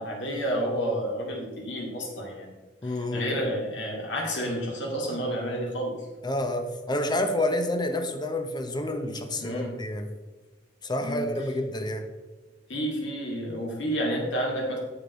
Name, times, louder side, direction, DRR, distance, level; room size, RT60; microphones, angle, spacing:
voice 1, 0.0-2.5 2.8-6.0 9.4-9.8 11.0-11.3 12.7-14.8, equal, 70° left, -1 dB, 2.2 m, -30 dB
voice 2, 2.8-3.3 6.2-10.1 10.8-12.1, left 1 dB, 25° left, 6 dB, 0.7 m, -29 dB
8.1 x 6.8 x 4.2 m, 1.3 s
head